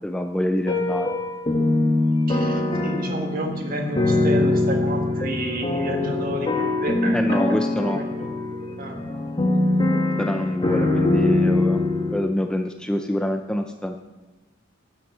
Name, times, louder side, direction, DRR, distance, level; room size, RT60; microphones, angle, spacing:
voice 1, 0.0-1.1 7.1-8.0 10.2-11.8 12.1-14.0, left 1 dB, 5° left, 5 dB, 0.4 m, -26 dB
sound 1, 0.7-12.2, left 2 dB, 25° left, 1.2 m, -22 dB
voice 2, 2.3-8.3 8.8-9.0, right 1 dB, 45° right, 3 dB, 1.6 m, -31 dB
11.5 x 7.2 x 6.2 m, 1.2 s
head